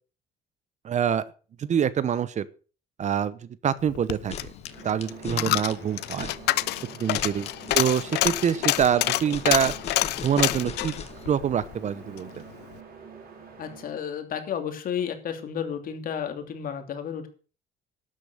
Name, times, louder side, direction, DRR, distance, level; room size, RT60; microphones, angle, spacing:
voice 1, 0.8-1.2 1.6-2.5 3.0-4.3 4.8-6.3 6.9-7.5 7.7-9.7 10.2-10.9 11.2-12.3, right 8 dB, 45° right, 18 dB, 0.9 m, -25 dB
Coin (dropping), 3.9-12.3 12.6-12.7, left 17 dB, 80° left, 0.7 m, -28 dB
sound 1, 4.1-11.3, left 6 dB, 40° left, 2.3 m, -39 dB
sound 2, 4.6-13.9, right 6 dB, 60° right, 4.9 m, -47 dB
voice 2, 13.6-17.3, left 8 dB, 55° left, 6 dB, 3.0 m, -32 dB
12.5 x 9.0 x 6.7 m, 0.38 s
cardioid pair, 110°, 17 cm